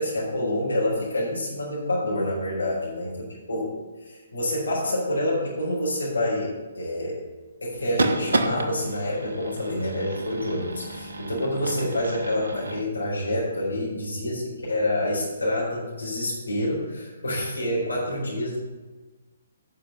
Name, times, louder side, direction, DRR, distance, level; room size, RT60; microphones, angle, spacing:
voice 1, 0.0-3.1 3.5-3.7 4.0-7.2 7.6-18.6, left 1 dB, 70° left, -6 dB, 4.1 m, -27 dB
sound 1, 7.8-12.8, right 2 dB, 60° right, 1.1 m, -30 dB
10.0 x 5.9 x 7.3 m, 1.2 s
figure-of-eight pair, 130°, 0 cm